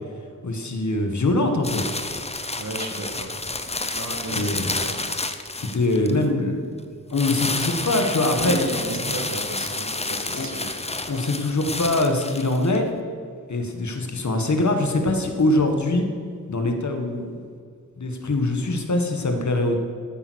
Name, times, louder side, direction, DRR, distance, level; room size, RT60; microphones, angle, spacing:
voice 1, 0.4-1.8 4.3-4.7 5.6-6.8 7.1-8.6 10.3-10.5 11.1-12.9 13.5-16.1 16.5-17.5 18.0-19.8, left 2 dB, 60° left, 4 dB, 1.7 m, -23 dB
sound 1, 1.6-6.2 7.1-12.8, left 2 dB, 20° left, 0.7 m, -30 dB
voice 2, 2.6-3.3 3.9-5.0 8.3-10.8, right 2 dB, 55° right, 3 dB, 1.9 m, -33 dB
13.0 x 8.8 x 6.3 m, 2.2 s
wide cardioid pair, 105°, 33 cm